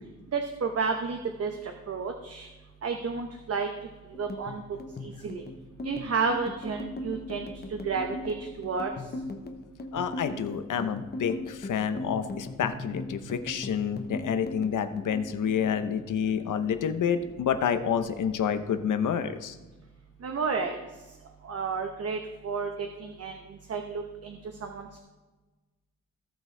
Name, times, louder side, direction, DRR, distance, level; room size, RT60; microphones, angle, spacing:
voice 1, 0.3-2.5 2.8-3.7 4.2-4.6 5.0-5.4 5.8-8.9 20.2-20.8 21.4-22.2 22.4-23.3 23.7-25.0, right 5 dB, 50° right, 4 dB, 0.9 m, -31 dB
sound 1, 4.1-16.7 17.0-18.0 18.3-18.7 19.0-19.6, left 2 dB, 30° left, 1.0 m, -39 dB
voice 2, 9.9-19.5, left 7 dB, 85° left, 9 dB, 0.8 m, -28 dB
18.0 x 6.3 x 3.3 m, 1.2 s
wide cardioid pair, 150°, 30 cm